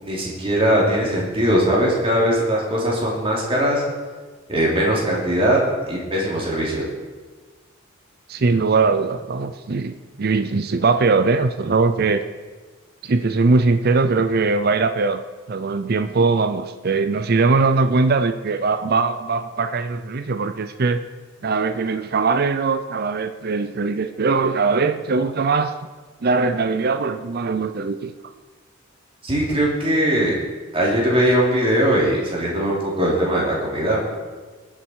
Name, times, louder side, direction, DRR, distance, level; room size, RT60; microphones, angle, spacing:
voice 1, 0.0-3.8 4.5-5.6 5.9-6.8 29.2-30.3 30.7-34.0, equal, 25° right, -4 dB, 3.4 m, -20 dB
voice 2, 8.3-12.2 13.0-15.2 15.5-21.0 21.4-25.8 26.2-28.1, right 4 dB, 50° right, 9 dB, 0.5 m, -20 dB
20.5 x 7.7 x 4.7 m, 1.4 s
head